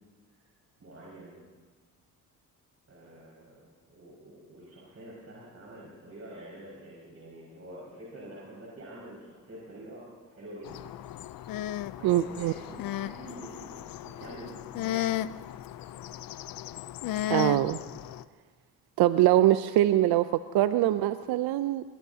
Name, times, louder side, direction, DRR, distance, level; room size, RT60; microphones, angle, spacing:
voice 1, 0.8-1.4 2.9-10.9 12.0-15.0, right 1 dB, 40° right, -6 dB, 5.6 m, -47 dB
sound 1, 10.6-18.2, left 13 dB, 65° left, 0.6 m, -35 dB
voice 2, 12.0-12.5 17.3-17.8 19.0-21.8, right 14 dB, 80° right, 12 dB, 0.6 m, -23 dB
22.5 x 20.5 x 2.8 m, 1.4 s
cardioid pair, 80°, 38 cm